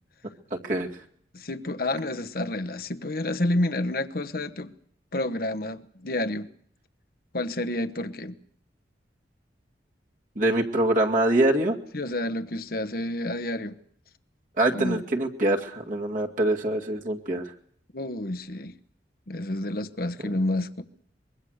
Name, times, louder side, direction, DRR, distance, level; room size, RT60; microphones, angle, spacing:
voice 1, 0.5-0.9 10.4-11.8 14.6-17.5, right 1 dB, 45° right, 2.2 m, -24 dB
voice 2, 1.3-4.7 5.1-6.5 7.3-8.3 11.9-13.8 14.7-15.0 17.9-18.8 19.3-20.8, left 1 dB, 55° left, 1.1 m, -29 dB
24.5 x 22.5 x 6.6 m
head